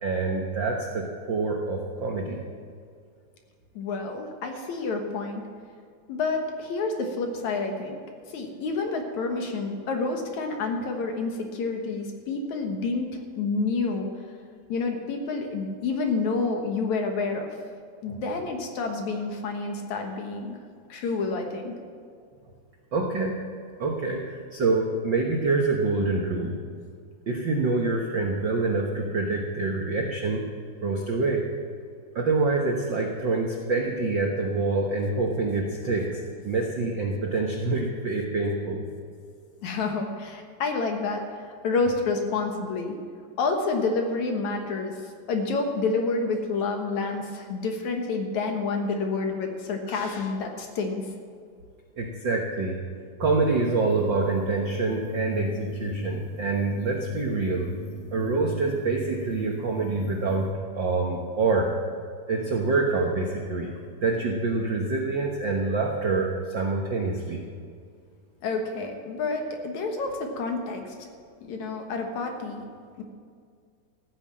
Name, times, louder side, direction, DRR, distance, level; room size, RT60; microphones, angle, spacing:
voice 1, 0.0-2.4 18.1-18.2 22.9-23.4 23.8-26.6 27.3-30.4 30.8-31.5 32.1-38.8 52.0-52.8 53.2-57.7 58.1-60.5 60.7-61.7 62.3-63.7 64.0-67.4, right 3 dB, 70° right, 0 dB, 1.1 m, -26 dB
voice 2, 3.8-5.4 6.1-8.0 8.3-13.1 13.4-14.1 14.7-17.5 18.0-20.6 20.9-21.7 39.6-43.0 43.4-45.0 45.3-51.0 68.4-71.0 71.4-72.7 73.0-73.1, left 3 dB, 60° left, 3 dB, 2.5 m, -29 dB
sound 1, 53.2-60.5, left 1 dB, 85° left, 6.7 m, -37 dB
14.5 x 10.0 x 7.5 m, 2.1 s
omnidirectional pair, 4.0 m